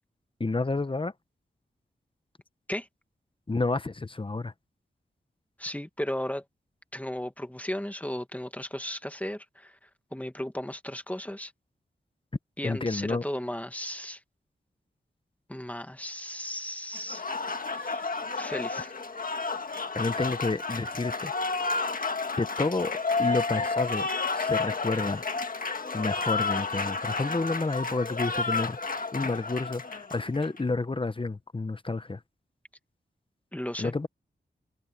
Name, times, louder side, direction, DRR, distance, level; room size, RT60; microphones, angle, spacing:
voice 1, 0.4-1.1 3.5-4.5 12.6-13.2 19.9-21.3 22.4-22.9 23.2-24.1 24.3-25.3 25.9-32.2 33.8-34.1, left 3 dB, 30° left, 0.9 m, -30 dB
voice 2, 5.6-6.4 6.9-11.5 12.6-14.2 15.5-17.2 17.7-18.1 18.4-18.9 33.5-33.9, left 1 dB, 10° left, 1.9 m, -35 dB
Applause, 16.9-30.6, left 4 dB, 50° left, 1.5 m, -31 dB
wide cardioid pair, 85°, 19 cm